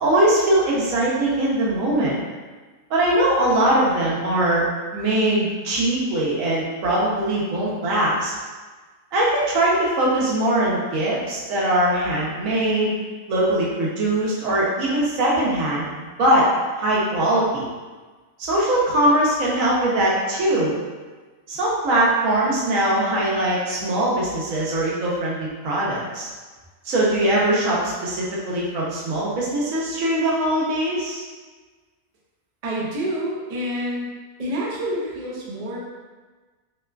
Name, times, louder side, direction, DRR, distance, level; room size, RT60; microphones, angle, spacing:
voice 1, 0.0-2.2 2.9-4.6 4.9-8.3 9.1-12.9 13.3-15.9 16.2-16.5 16.8-17.7 18.5-20.7 21.5-26.3 26.8-31.2, right 1 dB, 80° right, -6 dB, 1.1 m, -21 dB
voice 2, 32.6-34.1 34.4-35.8, equal, 60° right, -5 dB, 0.3 m, -27 dB
2.9 x 2.3 x 2.2 m, 1.3 s
omnidirectional pair, 1.4 m